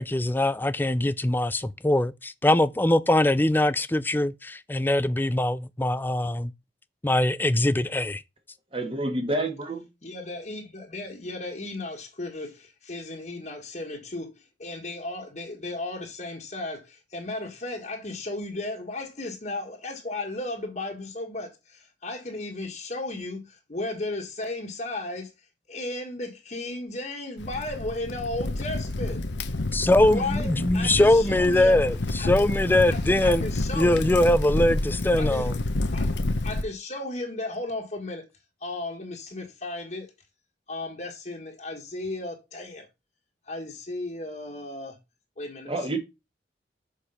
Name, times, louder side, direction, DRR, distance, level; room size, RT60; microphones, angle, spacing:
voice 1, 0.0-6.5 7.0-8.2 29.7-33.4 33.8-35.6, left 1 dB, 10° left, 0.4 m, -22 dB
voice 2, 8.7-9.9 45.7-46.0, right 1 dB, 30° right, 1.7 m, -28 dB
voice 3, 10.0-25.3 25.7-29.2 30.1-31.8 32.2-32.5 32.9-34.0 35.2-35.5 35.9-36.2 36.4-38.2 38.6-40.1 40.7-42.9 43.5-45.0 45.4-46.0, left 2 dB, 40° left, 1.6 m, -35 dB
Crackle, 27.4-36.6, left 2 dB, 85° left, 0.9 m, -29 dB
6.9 x 4.8 x 5.6 m
head